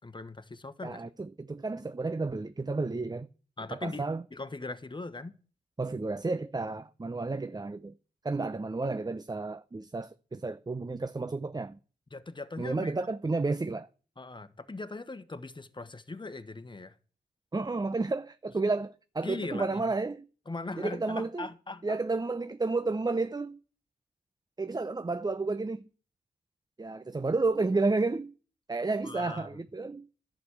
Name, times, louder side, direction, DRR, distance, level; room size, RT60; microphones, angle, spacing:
voice 1, 0.0-1.0 3.6-4.0 4.3-5.3 12.1-12.9 14.2-16.9 19.2-19.8 20.5-22.0 29.0-29.5, left 3 dB, 25° left, 1.4 m, -40 dB
voice 2, 0.8-3.3 3.7-4.2 5.8-7.9 8.2-11.8 12.6-13.9 17.5-20.2 20.8-21.5 21.8-23.6 24.6-25.9 26.8-28.3 28.7-30.1, right 3 dB, 25° right, 0.7 m, -31 dB
11.5 x 6.3 x 8.4 m
supercardioid pair, 40°, 17 cm